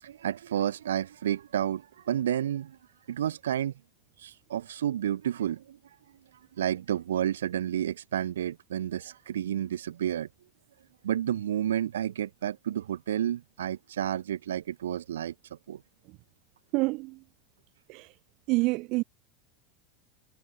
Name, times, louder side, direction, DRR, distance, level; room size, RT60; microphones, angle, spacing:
voice 1, 0.0-2.8 3.1-3.7 4.2-5.8 6.6-10.3 11.0-15.3 15.7-15.8, right 10 dB, 65° right, 1.0 m, -30 dB
voice 2, 16.7-17.2 17.9-18.1 18.5-19.0, right 24 dB, 45° right, 0.5 m, -27 dB
figure-of-eight pair, 80°, 0 cm